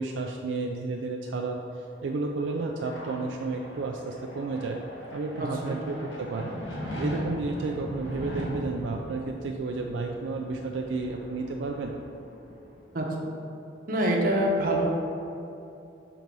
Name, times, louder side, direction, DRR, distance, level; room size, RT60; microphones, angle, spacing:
voice 1, 0.0-4.8 5.1-12.0, right 3 dB, 75° right, 1 dB, 0.4 m, -32 dB
sound 1, 1.7-13.0, equal, 85° left, 1.2 m, -40 dB
voice 2, 5.4-5.8 12.9-13.1 13.9-14.9, right 1 dB, 50° right, -1 dB, 0.8 m, -25 dB
4.6 x 3.9 x 5.3 m, 2.8 s
head